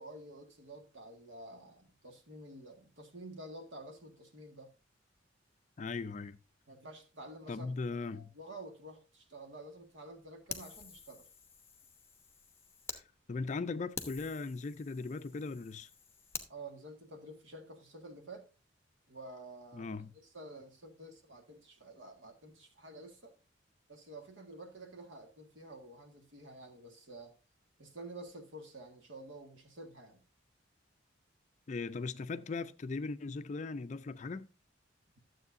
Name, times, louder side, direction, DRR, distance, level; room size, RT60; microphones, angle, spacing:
voice 1, 0.0-4.7 6.7-7.7 8.1-11.3 16.5-18.5 19.1-23.3 23.9-27.4 27.8-30.2, right 1 dB, 70° right, 1.8 m, -50 dB
voice 2, 5.8-6.4 7.5-8.3 12.9-13.0 13.3-15.9 19.7-20.1 31.7-34.5, left 4 dB, 35° left, 0.4 m, -38 dB
Fire, 10.5-13.0 13.5-13.6 13.9-16.5, left 5 dB, 10° left, 0.8 m, -47 dB
12.0 x 7.6 x 2.6 m
head